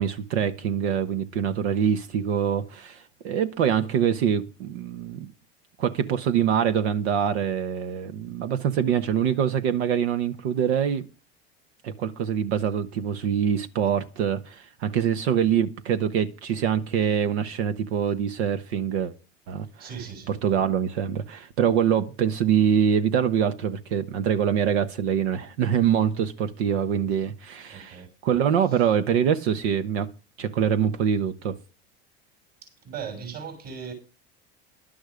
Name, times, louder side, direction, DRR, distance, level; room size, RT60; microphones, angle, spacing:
voice 1, 0.0-5.3 5.8-11.0 11.8-19.1 19.5-19.9 20.3-30.1 30.4-31.5, right 8 dB, 80° right, 1.1 m, -24 dB
voice 2, 19.8-20.4 27.7-28.1 28.7-28.8 32.6-33.9, right 7 dB, 50° right, 6.8 m, -38 dB
11.5 x 10.0 x 5.1 m
supercardioid pair, 100°, 32 cm